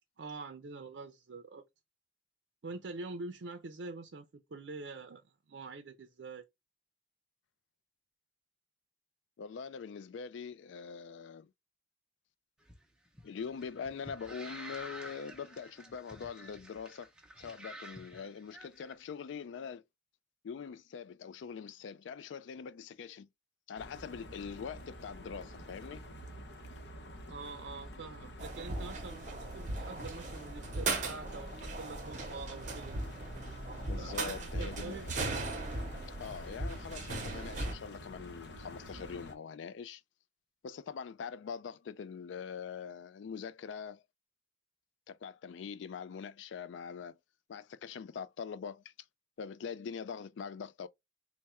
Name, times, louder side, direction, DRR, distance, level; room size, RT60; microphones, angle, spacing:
voice 1, 0.2-1.6 2.6-6.4 27.3-33.0 33.9-35.1, right 3 dB, 75° right, 0.5 m, -45 dB
voice 2, 9.4-11.5 13.2-17.1 17.4-19.8 20.4-23.3 23.7-26.0 33.8-35.0 36.2-40.0 40.6-44.0 45.1-47.2 47.5-48.9 49.4-50.9, left 6 dB, 85° left, 0.3 m, -43 dB
sound 1, 12.6-18.9, right 1 dB, 5° right, 0.6 m, -50 dB
sound 2, 23.8-39.3, equal, 65° left, 0.7 m, -48 dB
sound 3, 28.4-37.7, right 2 dB, 40° right, 0.8 m, -38 dB
3.5 x 2.1 x 4.2 m
head